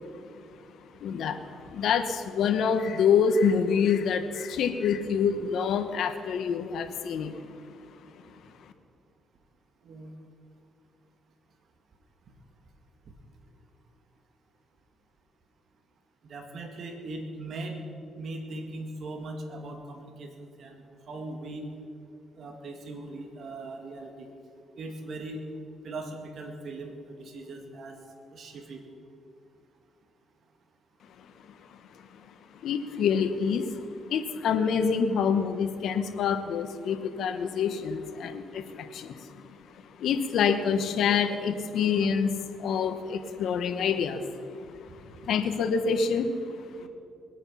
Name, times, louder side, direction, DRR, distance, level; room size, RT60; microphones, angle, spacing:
voice 1, 1.0-7.4 31.5-32.2 32.6-33.8 34.1-39.4 39.8-44.3 44.9-46.9, left 6 dB, 75° left, 8 dB, 1.1 m, -27 dB
voice 2, 16.3-17.9 18.2-20.8 21.1-21.7 22.4-24.3 24.8-25.4 25.8-28.0 28.3-28.8 46.8-46.9, right 2 dB, 60° right, 3 dB, 2.2 m, -39 dB
21.0 x 8.9 x 5.8 m, 2.4 s
cardioid pair, 90°, 0 cm